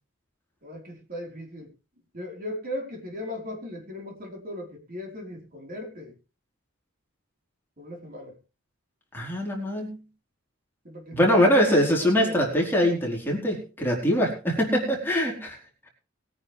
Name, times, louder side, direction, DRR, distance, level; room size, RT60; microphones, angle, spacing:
voice 1, 0.6-1.7 2.1-6.1 7.8-8.3 10.8-12.4, left 1 dB, 45° right, 1 dB, 4.8 m, -37 dB
voice 2, 9.1-10.0 11.1-15.6, equal, 10° left, -2 dB, 4.5 m, -23 dB
21.5 x 10.0 x 3.5 m, 0.33 s
head